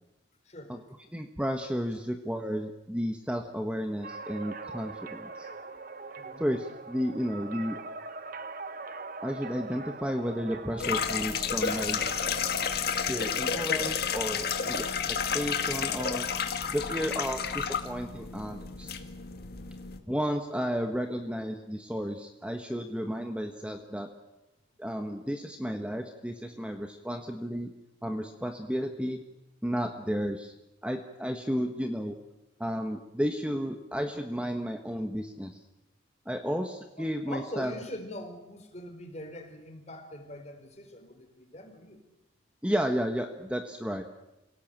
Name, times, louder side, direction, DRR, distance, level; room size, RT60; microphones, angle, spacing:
voice 1, 0.4-0.8 6.2-6.5 36.4-36.5 37.0-42.0, left 1 dB, 35° left, 5 dB, 4.4 m, -42 dB
voice 2, 1.1-5.5 6.4-7.8 9.2-12.0 13.1-16.3 16.7-19.0 20.1-24.1 24.8-27.7 28.0-29.2 29.6-30.5 30.8-32.2 32.6-35.6 36.2-37.7 42.6-44.0, equal, 5° right, 5 dB, 1.3 m, -32 dB
sound 1, 4.0-12.7, right 3 dB, 45° right, 1.1 m, -42 dB
sound 2, 10.8-20.0, left 6 dB, 55° left, 1.9 m, -31 dB
27.5 x 18.0 x 8.9 m, 0.95 s
head